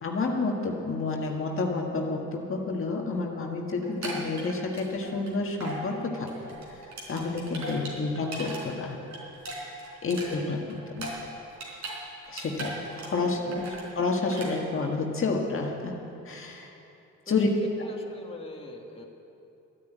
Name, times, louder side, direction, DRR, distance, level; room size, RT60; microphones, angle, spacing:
voice 1, 0.0-6.3 6.7-6.8 7.1-9.0 10.0-11.2 12.3-16.0 16.2-16.7 17.3-17.5, left 3 dB, 45° left, 0 dB, 1.7 m, -29 dB
sound 1, 3.8-5.3 5.6-5.8 6.1-8.6 8.9-12.0 12.2-13.3 13.5-13.9 14.3-14.5, right 2 dB, 70° right, 4.3 m, -38 dB
voice 2, 7.7-8.1 10.0-10.7 12.9-13.8 17.3-17.4 17.8-19.0, left 2 dB, 20° left, 0 dB, 1.8 m, -45 dB
13.0 x 9.6 x 9.2 m, 2.9 s
cardioid pair, 90°, 30 cm